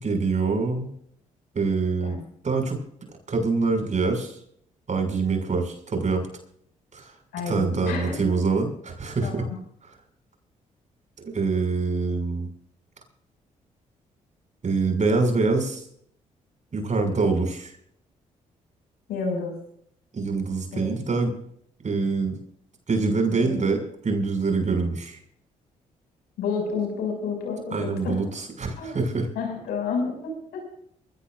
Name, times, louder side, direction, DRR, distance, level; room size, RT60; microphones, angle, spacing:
voice 1, 0.0-0.9 1.5-2.2 2.4-2.8 3.3-4.3 4.9-6.2 6.9-7.1 7.5-9.5 11.3-12.5 14.6-15.8 16.7-17.7 20.1-21.3 21.8-22.4 22.9-25.2 27.7-29.3, right 4 dB, 50° right, 4 dB, 6.5 m, -25 dB
voice 2, 7.3-8.2 9.2-9.5 19.1-19.5 20.7-20.9 23.4-23.5 26.4-28.3 28.8-29.0 29.3-30.6, left 5 dB, 80° left, 2 dB, 6.5 m, -30 dB
23.5 x 17.0 x 2.6 m, 0.67 s
hypercardioid pair, 50°, 16 cm